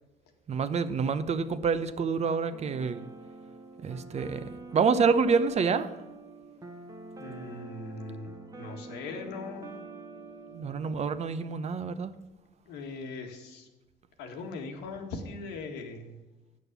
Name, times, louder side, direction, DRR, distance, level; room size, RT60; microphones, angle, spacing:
voice 1, 0.5-3.0 3.8-4.5 4.7-5.9 10.5-12.1, right 5 dB, 40° right, 12 dB, 0.8 m, -27 dB
sound 1, 2.3-11.0, right 3 dB, 20° right, 1.2 m, -46 dB
voice 2, 7.2-8.3 8.6-9.8 12.7-13.7 14.2-16.2, left 3 dB, 90° left, 4 dB, 1.8 m, -40 dB
9.2 x 6.5 x 6.8 m, 1.1 s
cardioid pair, 110°, 17 cm